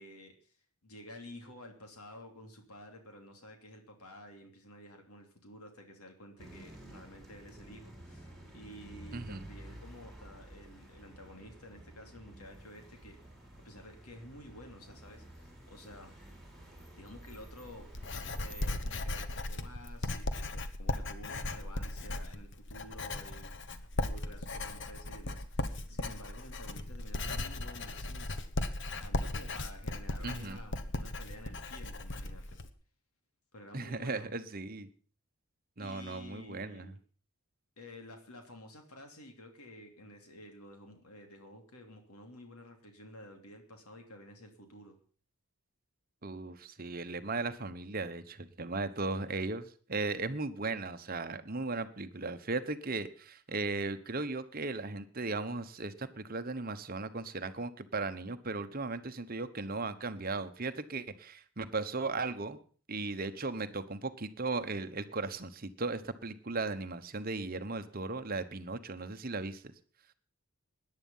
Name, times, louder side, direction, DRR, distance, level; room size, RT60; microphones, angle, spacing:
voice 1, 0.0-13.2 13.6-16.1 16.9-23.5 24.0-32.4 33.5-34.3 35.8-37.0 37.8-45.0, left 1 dB, 85° left, 4 dB, 3.0 m, -51 dB
sound 1, 6.4-18.6, right 1 dB, ahead, 4.5 m, -52 dB
voice 2, 9.1-9.4 30.2-30.6 33.7-34.9 35.8-36.9 46.2-62.6 62.9-69.6, right 3 dB, 40° right, 10 dB, 1.0 m, -37 dB
Writing, 17.3-32.7, left 2 dB, 55° left, 1.2 m, -37 dB
17.5 x 10.5 x 5.6 m, 0.42 s
head